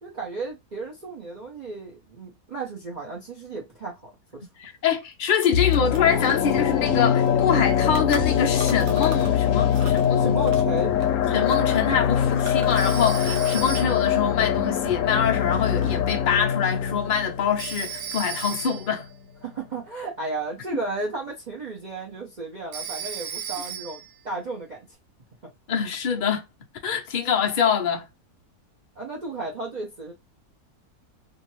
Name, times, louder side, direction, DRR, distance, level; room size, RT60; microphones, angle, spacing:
voice 1, 0.0-4.5 10.2-10.9 19.4-24.9 29.0-30.1, right 3 dB, 40° right, 0.7 m, -34 dB
voice 2, 4.6-10.4 11.3-19.1 25.7-26.4 26.8-28.1, left 7 dB, 85° left, 0.4 m, -25 dB
sound 1, 4.7-4.8 5.0-9.4 9.7-13.7 14.0-15.1 15.5-16.1, right 5 dB, 90° right, 1.4 m, -43 dB
sound 2, 5.5-18.6 18.9-19.0, left 9 dB, 65° left, 0.9 m, -23 dB
Telephone, 12.8-14.2 17.6-19.0 22.7-24.1, right 9 dB, 65° right, 1.0 m, -35 dB
2.7 x 2.5 x 2.9 m
omnidirectional pair, 1.7 m